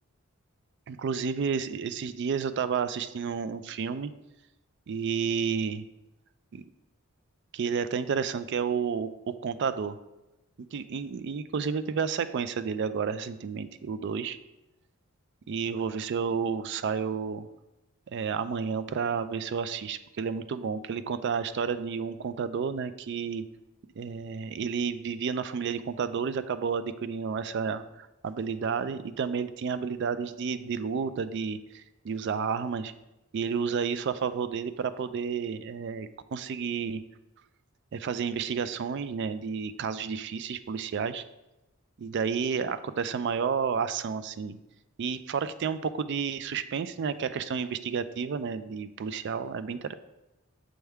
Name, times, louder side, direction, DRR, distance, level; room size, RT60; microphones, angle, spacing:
voice 1, 0.9-4.1 4.9-5.8 6.5-6.6 7.5-10.0 10.7-14.4 15.5-17.5 18.1-23.4 24.0-32.9 33.3-37.0 37.9-41.2 42.0-44.6 45.0-49.9, right 6 dB, 50° right, 13 dB, 0.3 m, -31 dB
6.3 x 3.4 x 4.6 m, 0.97 s
head